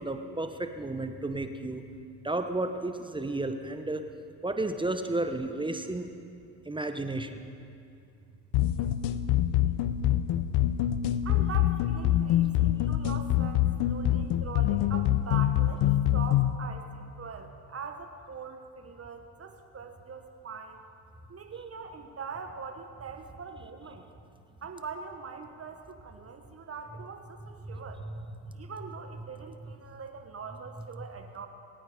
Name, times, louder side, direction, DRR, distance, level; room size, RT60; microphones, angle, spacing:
voice 1, 0.0-1.8 2.2-4.0 4.4-6.1 6.7-7.4 27.6-27.8 28.4-28.5, right 2 dB, 10° right, 7 dB, 1.0 m, -32 dB
sound 1, 8.5-16.6, left 12 dB, 55° left, 0.8 m, -25 dB
voice 2, 11.2-20.8 21.3-24.0 24.6-28.0 28.5-31.5, right 5 dB, 30° right, 5 dB, 1.4 m, -42 dB
22.0 x 9.0 x 5.1 m, 2.5 s
hypercardioid pair, 80°, 48 cm